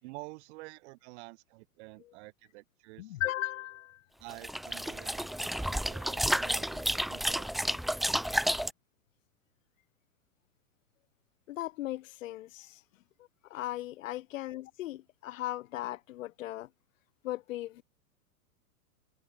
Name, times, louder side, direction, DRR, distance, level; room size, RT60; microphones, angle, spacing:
voice 1, 0.0-3.2 4.2-7.8, right 25 dB, 50° right, 3.1 m, -49 dB
voice 2, 3.0-4.0 11.5-12.8 13.5-16.7 17.2-17.8, left 15 dB, 60° left, 2.7 m, -37 dB
sound 1, 4.3-8.7, equal, ahead, 0.3 m, -31 dB
hypercardioid pair, 120°, 44 cm